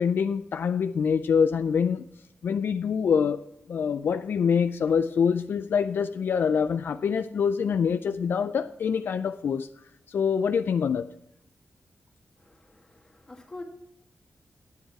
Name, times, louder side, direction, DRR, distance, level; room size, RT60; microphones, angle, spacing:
voice 1, 0.0-2.1 2.4-9.7 10.1-11.1, left 6 dB, 70° left, 0.4 m, -25 dB
voice 2, 12.4-13.6, left 2 dB, 20° left, 1.7 m, -45 dB
10.5 x 8.0 x 4.7 m
wide cardioid pair, 180°, 4 cm